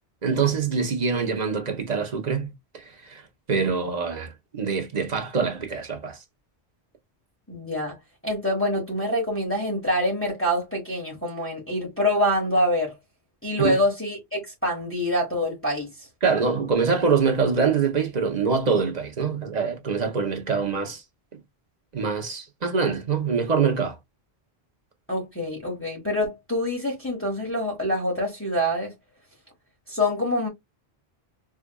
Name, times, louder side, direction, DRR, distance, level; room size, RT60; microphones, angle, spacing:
voice 1, 0.2-3.2 3.5-6.2 13.6-13.8 16.2-21.0 21.9-24.0, right 5 dB, 45° right, 0.9 m, -24 dB
voice 2, 7.5-8.0 8.2-12.9 13.4-15.9 25.1-28.9 29.9-30.5, left 1 dB, 15° left, 1.3 m, -25 dB
4.6 x 2.4 x 2.3 m
omnidirectional pair, 1.1 m